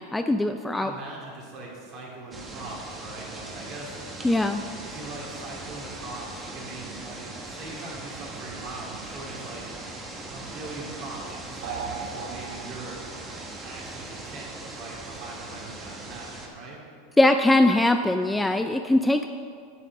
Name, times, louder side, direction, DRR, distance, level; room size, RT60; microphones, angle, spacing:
voice 1, 0.0-0.9 4.2-4.6 17.2-19.3, left 1 dB, 5° left, 7 dB, 0.3 m, -21 dB
voice 2, 0.7-3.9 4.8-9.7 10.3-13.0 13.6-16.8, right 2 dB, 45° right, -3 dB, 3.1 m, -41 dB
sound 1, 2.3-16.5, right 2 dB, 15° right, 1.4 m, -40 dB
sound 2, 11.6-13.1, right 6 dB, 70° right, 1.0 m, -36 dB
8.4 x 8.3 x 6.0 m, 2.2 s
supercardioid pair, 140°, 0 cm